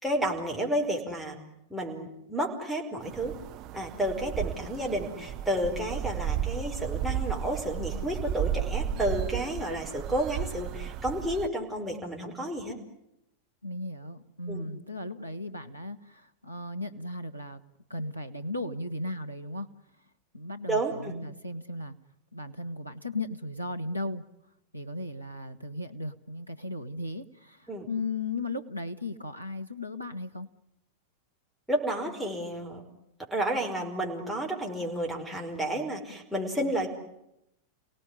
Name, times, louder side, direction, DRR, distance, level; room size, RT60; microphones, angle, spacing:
voice 1, 0.0-1.4 1.7-3.3 3.7-12.8 14.5-14.7 20.7-21.1 27.7-27.9 31.7-32.8 33.3-36.9, right 1 dB, ahead, 3 dB, 5.1 m, -31 dB
sound 1, 3.0-11.5, right 9 dB, 40° right, 0.9 m, -34 dB
voice 2, 13.6-17.6 17.9-19.7 20.3-21.9 22.3-24.2 24.7-30.5, left 2 dB, 90° right, 6 dB, 1.3 m, -36 dB
29.0 x 18.0 x 9.9 m, 0.85 s
figure-of-eight pair, 90°, 0 cm